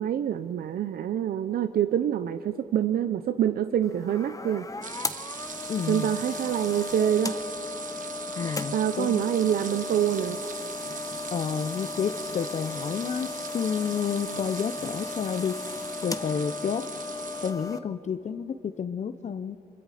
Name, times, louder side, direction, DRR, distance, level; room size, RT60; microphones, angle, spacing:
voice 1, 0.0-4.7 5.9-7.3 8.7-10.4, right 10 dB, 80° right, 10 dB, 0.6 m, -26 dB
sound 1, 3.8-17.8, left 3 dB, 20° left, 1.0 m, -36 dB
sound 2, 4.8-17.5, right 6 dB, 60° right, 1.2 m, -41 dB
voice 2, 5.7-6.1 8.4-9.3 11.3-15.6 16.0-16.8 17.4-19.6, left 7 dB, 50° left, 9 dB, 0.7 m, -30 dB
26.0 x 22.5 x 5.0 m, 2.6 s
cardioid pair, 100°, 15 cm